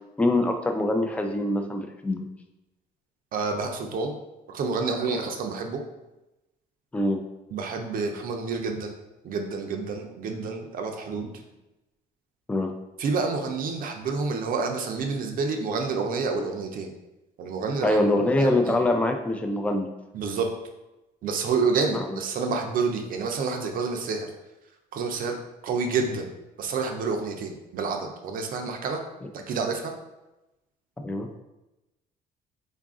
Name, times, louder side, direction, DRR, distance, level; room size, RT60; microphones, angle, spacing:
voice 1, 0.2-2.2 6.9-7.2 12.5-12.7 17.8-19.9 21.9-22.2 31.0-31.3, left 1 dB, 10° left, 4 dB, 0.4 m, -24 dB
voice 2, 3.3-4.2 4.5-5.8 7.5-9.0 9.2-11.3 13.0-16.9 17.4-18.0 18.4-18.8 20.1-20.5 21.2-24.3 24.9-26.3 26.6-29.0 29.5-29.9, right 4 dB, 55° right, 3 dB, 0.5 m, -28 dB
3.8 x 2.5 x 3.6 m, 0.99 s
cardioid pair, 110°, 17 cm